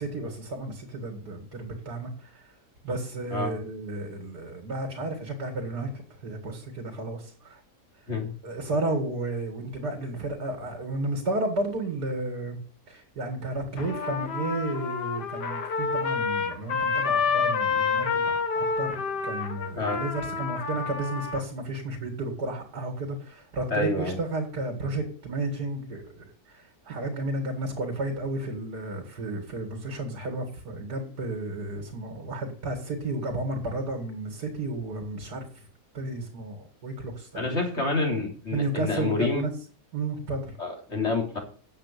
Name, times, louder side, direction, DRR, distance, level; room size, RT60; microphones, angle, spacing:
voice 1, 0.0-2.6 2.8-7.6 8.4-12.6 12.9-35.7 35.9-37.8 38.5-39.5 39.9-40.6, right 2 dB, 75° right, 3 dB, 2.6 m, -32 dB
Trumpet, 13.8-21.4, left 5 dB, 85° left, 2.0 m, -28 dB
voice 2, 23.7-24.2 37.3-39.4 40.6-41.4, left 3 dB, 40° left, 2 dB, 3.7 m, -28 dB
8.9 x 7.4 x 8.4 m, 0.42 s
omnidirectional pair, 1.7 m